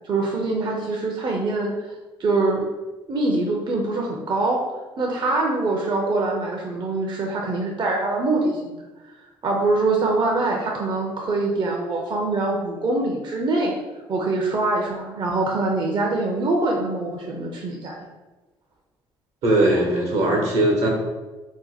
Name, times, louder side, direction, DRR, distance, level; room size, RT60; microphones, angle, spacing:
voice 1, 0.0-2.6 3.1-4.6 5.0-8.8 9.4-13.7 14.1-18.0, right 2 dB, 40° right, -1 dB, 0.6 m, -24 dB
voice 2, 19.4-20.9, right 1 dB, 70° right, -1 dB, 1.0 m, -19 dB
2.8 x 2.1 x 4.0 m, 1.2 s
hypercardioid pair, 65°, 12 cm